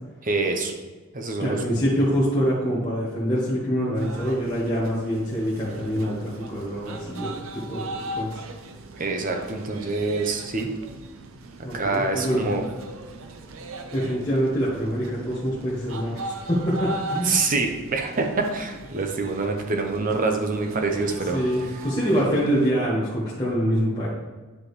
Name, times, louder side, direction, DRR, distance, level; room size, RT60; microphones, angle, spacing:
voice 1, 0.2-0.7 1.1-1.6 9.0-10.7 11.7-12.7 17.2-21.4, right 3 dB, 40° right, 4 dB, 0.9 m, -25 dB
voice 2, 1.4-8.4 11.6-12.4 13.9-17.4 21.3-24.1, equal, 20° left, -8 dB, 1.4 m, -25 dB
sound 1, 4.0-22.7, right 2 dB, 80° right, 0.7 m, -39 dB
9.7 x 5.0 x 3.3 m, 1.3 s
head